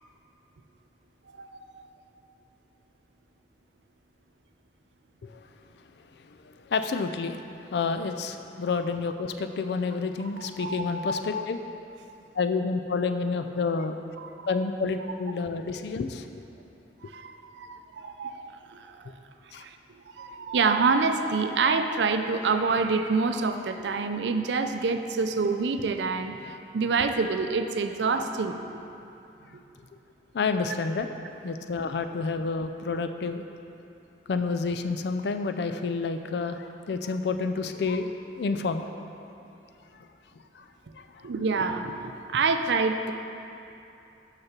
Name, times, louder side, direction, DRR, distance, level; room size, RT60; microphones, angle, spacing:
voice 1, 1.3-1.9 10.4-11.0 14.2-14.5 17.0-19.1 19.5-19.8 20.1-28.8 29.5-29.6 41.2-43.1, right 4 dB, 85° right, 7 dB, 0.5 m, -27 dB
voice 2, 6.7-11.6 12.3-14.0 14.5-16.4 19.5-19.6 30.3-31.1 31.4-33.4 34.3-38.1 38.4-38.8 40.6-40.7 40.9-41.1, left 4 dB, 75° left, 8 dB, 0.4 m, -29 dB
6.5 x 5.8 x 5.8 m, 2.9 s
head